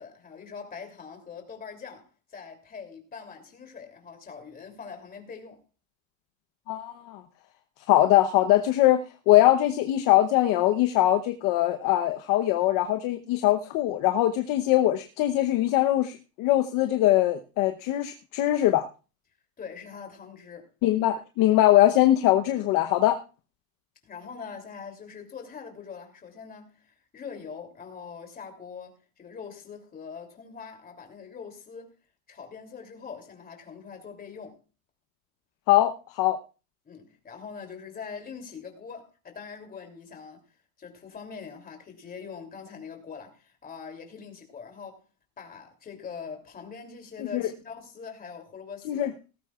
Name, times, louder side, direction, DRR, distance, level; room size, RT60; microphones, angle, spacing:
voice 1, 0.0-5.6 19.6-20.7 24.0-31.9 32.3-34.6 36.8-40.4 40.8-45.0 45.4-49.1, left 6 dB, 20° left, 3.0 m, -43 dB
voice 2, 6.7-7.2 7.9-9.0 9.3-18.8 20.8-23.2 35.7-36.4 47.3-47.4 48.9-49.1, left 14 dB, 50° left, 0.9 m, -22 dB
18.0 x 14.5 x 2.4 m
supercardioid pair, 150°, 42 cm